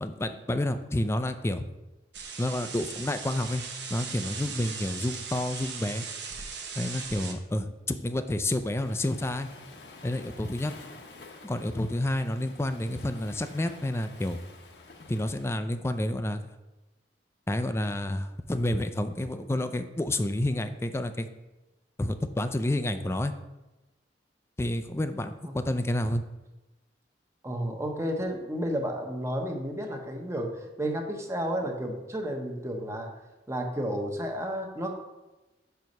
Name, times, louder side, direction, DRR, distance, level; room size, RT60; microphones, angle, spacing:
voice 1, 0.0-1.6 2.4-3.6 3.9-6.0 6.8-9.5 10.0-10.7 11.4-14.4 15.1-16.4 17.5-21.3 22.0-23.3 24.6-26.2, left 1 dB, 15° left, 9 dB, 0.4 m, -29 dB
sound 1, 2.1-7.3, right 5 dB, 80° right, 1.0 m, -38 dB
Waves surf, 8.7-15.4, left 3 dB, 65° left, 0.9 m, -49 dB
voice 2, 27.4-33.1 33.5-34.9, equal, 15° right, 2 dB, 0.9 m, -32 dB
6.1 x 4.6 x 5.3 m, 1.1 s
head